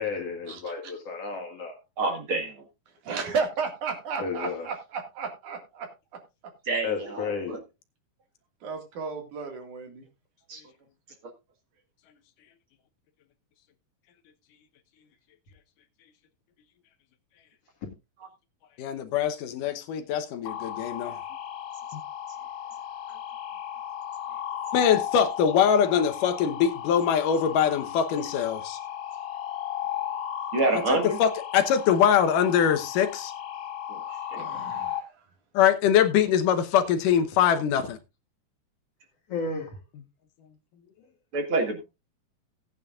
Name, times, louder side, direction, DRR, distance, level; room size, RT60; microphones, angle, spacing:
voice 1, 0.0-1.8 4.2-4.7 6.8-7.6 37.0-37.1 37.8-37.9 39.3-39.8, left 5 dB, 50° left, 3.0 m, -33 dB
voice 2, 2.0-2.5 6.7-7.6 10.5-10.6 30.5-31.2 33.9-34.0 34.3-34.5 41.3-41.8, right 3 dB, 45° right, 2.3 m, -27 dB
voice 3, 3.1-5.9 8.6-10.1 34.4-35.1, right 5 dB, 70° right, 3.5 m, -33 dB
voice 4, 18.8-21.2 21.9-22.0 24.7-28.8 30.7-33.3 35.5-38.0, left 8 dB, 85° left, 2.7 m, -23 dB
sound 1, 20.4-35.0, left 10 dB, 70° left, 1.3 m, -35 dB
17.5 x 9.2 x 2.5 m
omnidirectional pair, 3.6 m